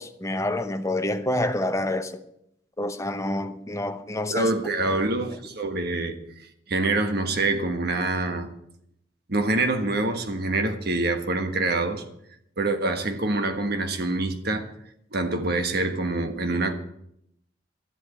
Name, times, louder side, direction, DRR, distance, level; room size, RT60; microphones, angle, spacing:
voice 1, 0.0-2.2 2.8-4.5, left 1 dB, 15° left, 0.9 m, -27 dB
voice 2, 4.3-6.1 6.7-8.5 9.3-12.0 12.6-14.7 15.1-16.7, right 2 dB, 60° right, 1.5 m, -25 dB
12.5 x 8.0 x 8.6 m
head